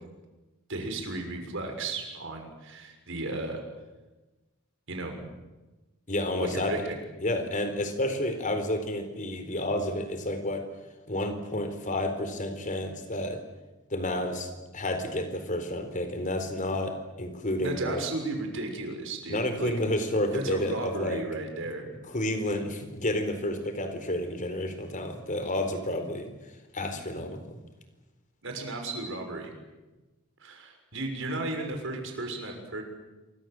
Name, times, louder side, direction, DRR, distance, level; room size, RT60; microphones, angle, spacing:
voice 1, 0.7-3.6 4.9-5.3 6.4-7.0 17.6-19.7 20.3-22.0 28.4-29.5 30.4-32.8, right 2 dB, 60° right, 4 dB, 6.5 m, -34 dB
voice 2, 6.1-6.7 7.2-10.6 11.1-13.4 13.9-18.0 19.3-21.2 22.1-26.3 26.7-27.6, left 1 dB, 35° left, 8 dB, 4.3 m, -30 dB
28.0 x 24.5 x 7.9 m, 1.1 s
head